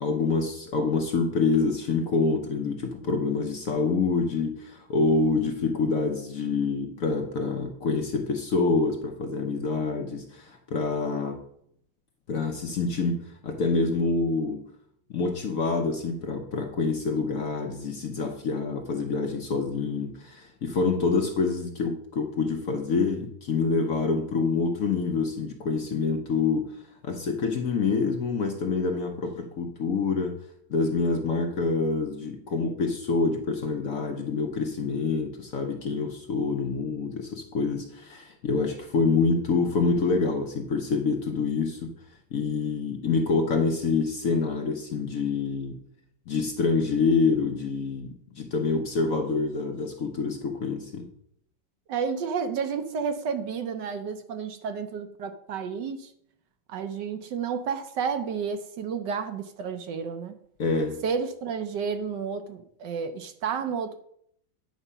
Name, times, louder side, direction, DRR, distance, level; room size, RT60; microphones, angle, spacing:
voice 1, 0.0-11.4 12.3-14.6 15.1-30.4 30.7-41.9 42.3-45.8 46.3-51.1 60.6-61.0, left 4 dB, 55° left, 4 dB, 1.0 m, -26 dB
voice 2, 51.9-56.1 56.7-60.4 61.0-63.9, right 6 dB, 70° right, 8 dB, 1.3 m, -31 dB
9.1 x 4.9 x 5.5 m, 0.69 s
omnidirectional pair, 2.1 m